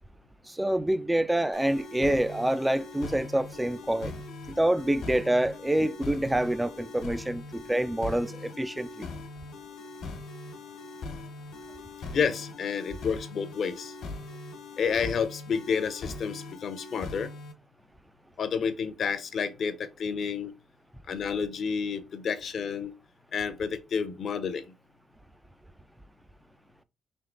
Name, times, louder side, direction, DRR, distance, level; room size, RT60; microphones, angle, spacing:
voice 1, 0.5-4.1 4.5-9.1, right 1 dB, 10° right, 0.4 m, -27 dB
sound 1, 1.5-17.5, left 3 dB, 75° left, 1.2 m, -41 dB
voice 2, 12.1-13.9 14.8-17.3 18.4-20.5 21.1-22.9 23.3-24.7, left 6 dB, 55° left, 0.6 m, -30 dB
3.6 x 2.9 x 3.8 m
cardioid pair, 90°, 0 cm